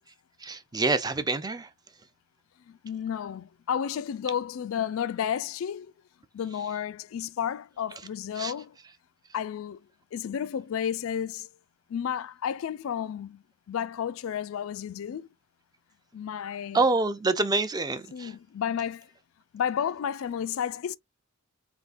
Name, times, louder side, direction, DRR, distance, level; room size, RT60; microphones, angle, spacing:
voice 1, 0.4-1.7 8.4-8.5 16.7-18.3, right 3 dB, 20° right, 0.4 m, -26 dB
voice 2, 2.7-5.9 6.3-8.8 9.3-9.8 10.1-11.5 11.9-15.3 16.1-16.9 18.1-19.1 19.5-21.0, left 8 dB, 70° left, 0.3 m, -32 dB
4.0 x 3.6 x 2.4 m
head